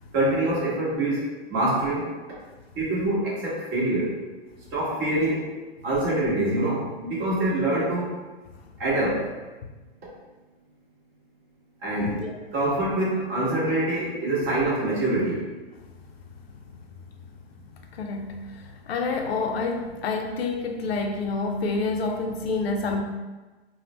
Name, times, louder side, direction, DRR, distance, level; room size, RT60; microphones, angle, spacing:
voice 1, 0.1-2.1 2.7-4.1 4.7-5.4 5.8-8.1 8.8-9.3 11.8-12.2 12.5-15.4, right 1 dB, 35° right, -6 dB, 1.3 m, -25 dB
voice 2, 17.9-23.0, left 3 dB, 75° left, 3 dB, 0.6 m, -28 dB
3.4 x 2.2 x 2.9 m, 1.2 s
hypercardioid pair, 120°, 31 cm